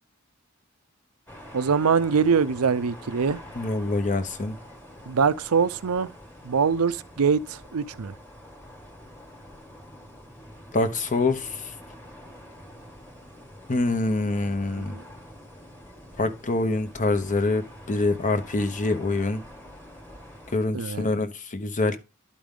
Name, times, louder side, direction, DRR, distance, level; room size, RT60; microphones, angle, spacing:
sound 1, 1.3-20.6, equal, 10° left, 1.4 m, -46 dB
voice 1, 1.5-3.4 5.1-6.1 6.4-8.1 14.8-15.0 20.7-21.1, right 6 dB, 70° right, 0.5 m, -23 dB
voice 2, 3.6-4.6 10.7-11.6 13.7-14.9 16.2-17.6 17.9-19.4 20.5-22.0, left 2 dB, 35° left, 0.8 m, -25 dB
11.5 x 5.1 x 3.7 m
head